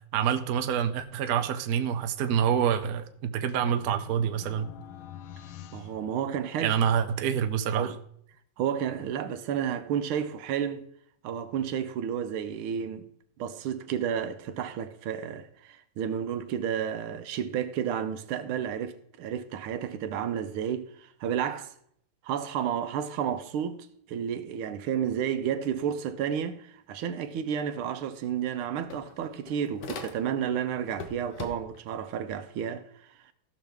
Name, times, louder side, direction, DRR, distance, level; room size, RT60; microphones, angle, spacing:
voice 1, 0.1-4.7 6.6-7.9, right 8 dB, 65° right, 1.0 m, -27 dB
sound 1, 3.1-6.9, left 10 dB, 80° left, 1.5 m, -47 dB
voice 2, 5.7-6.7 7.7-8.0 8.6-10.9 11.2-13.1 13.4-21.7 22.2-33.1, right 8 dB, 85° right, 1.6 m, -31 dB
sound 2, 27.9-28.0 28.3-30.5 30.9-31.9, left 4 dB, 60° left, 1.5 m, -42 dB
16.0 x 6.5 x 3.5 m
omnidirectional pair, 2.3 m